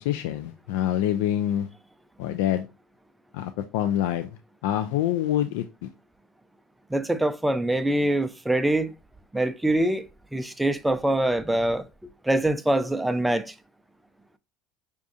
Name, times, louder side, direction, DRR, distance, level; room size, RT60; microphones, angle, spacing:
voice 1, 0.0-1.7 2.2-2.7 3.3-4.4 4.6-5.9, left 11 dB, 80° left, 0.3 m, -26 dB
voice 2, 6.9-8.9 9.3-10.1 10.3-11.8 12.2-13.5, right 1 dB, 5° right, 0.4 m, -24 dB
5.0 x 2.3 x 2.6 m
supercardioid pair, 95°, 0 cm